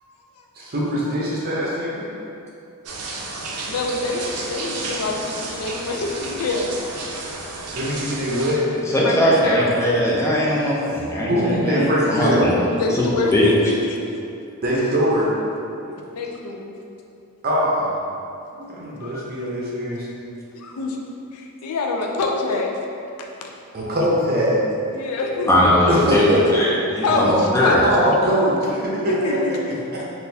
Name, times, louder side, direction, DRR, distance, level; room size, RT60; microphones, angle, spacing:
voice 1, 0.6-2.1 7.7-8.7 11.3-12.5 14.6-15.4 17.4-17.9 18.5-20.1 23.7-24.6 25.9-26.6 27.2-29.6 29.9-30.0, equal, 45° right, -5 dB, 0.6 m, -22 dB
sound 1, 2.9-8.5, right 3 dB, 85° right, 0.5 m, -32 dB
voice 2, 3.6-6.7 9.0-9.8 12.7-14.0 15.8-16.7 19.0-19.4 20.5-21.0 21.3-22.7 23.4-23.5 23.9-24.0 24.9-25.7 27.0-27.3 27.6-27.8 28.9-29.8, left 3 dB, 90° left, 1 dB, 0.4 m, -26 dB
voice 3, 8.9-12.5 13.0-13.1 13.3-13.4 25.5-26.3 26.5-26.7 27.0-27.8, left 1 dB, 15° left, -6 dB, 0.5 m, -19 dB
3.8 x 2.5 x 2.7 m, 2.7 s
head